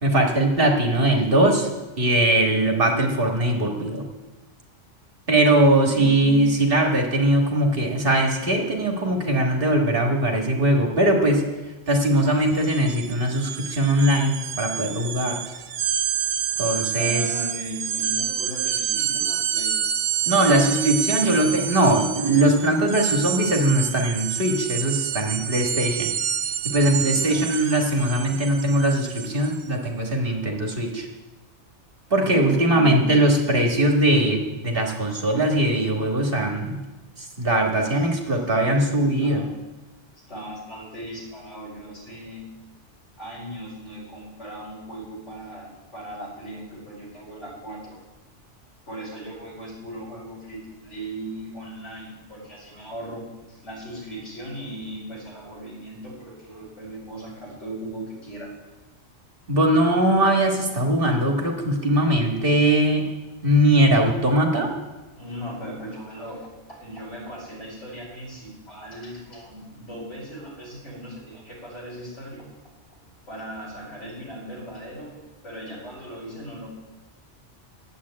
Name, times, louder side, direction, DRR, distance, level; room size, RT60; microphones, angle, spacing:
voice 1, 0.0-1.7 2.0-4.1 5.3-11.4 11.9-15.4 16.6-17.2 20.3-26.1 26.6-31.1 32.1-36.8 37.2-39.4 59.5-63.1 63.4-64.7, right 1 dB, 50° right, 1 dB, 1.8 m, -20 dB
voice 2, 5.8-6.6 16.9-19.8 26.9-27.5 32.1-33.2 37.8-38.0 38.5-39.5 40.3-42.5 43.2-48.0 48.9-58.5 65.2-72.5 72.9-73.0 73.3-76.7, right 1 dB, 75° left, -5 dB, 5.4 m, -38 dB
sound 1, 11.9-12.1 12.4-29.6, right 9 dB, 70° right, 0.9 m, -28 dB
10.5 x 8.0 x 8.5 m, 1.1 s
omnidirectional pair, 1.2 m